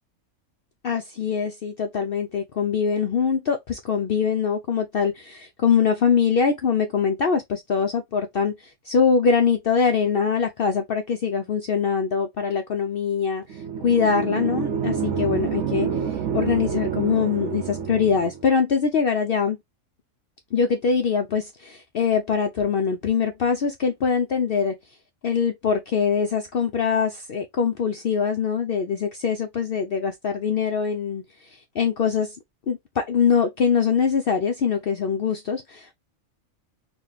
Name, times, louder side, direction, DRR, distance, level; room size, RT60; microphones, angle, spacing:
voice 1, 0.8-19.6 20.5-24.7 25.2-31.2 31.5-32.4 32.7-36.0, left 6 dB, 60° left, 0.6 m, -23 dB
sound 1, 13.5-18.4, right 6 dB, 60° right, 1.0 m, -28 dB
4.1 x 2.3 x 3.3 m
omnidirectional pair, 1.4 m